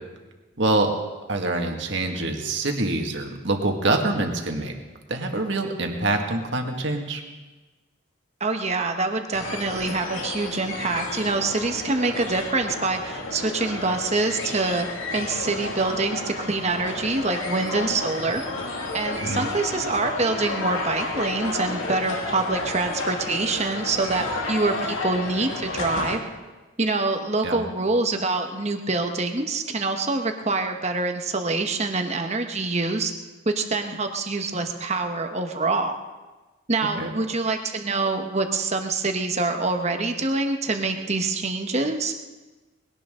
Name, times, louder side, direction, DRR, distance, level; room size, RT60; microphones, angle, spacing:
voice 1, 0.6-0.9 1.3-4.7 5.1-7.2 19.2-19.5 27.4-27.6 37.0-37.2, right 2 dB, 60° right, 3 dB, 1.9 m, -25 dB
voice 2, 8.4-14.9 15.1-18.4 18.9-26.2 26.8-33.1 33.4-36.0 36.7-42.1, right 3 dB, 35° right, 5 dB, 1.2 m, -25 dB
sound 1, 9.3-26.2, left 2 dB, 80° left, 2.2 m, -31 dB
20.5 x 17.5 x 3.8 m, 1.2 s
head